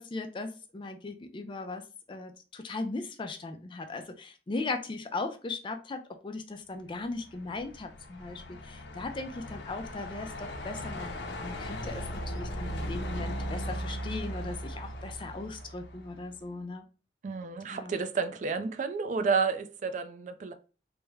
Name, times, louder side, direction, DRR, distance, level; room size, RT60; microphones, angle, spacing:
voice 1, 0.0-1.8 2.1-16.8 17.7-17.9, left 3 dB, 30° left, 0.4 m, -38 dB
Truck, 7.0-16.4, equal, 80° left, 0.6 m, -38 dB
voice 2, 17.2-20.5, right 5 dB, 45° right, 0.4 m, -30 dB
3.4 x 2.1 x 3.2 m
head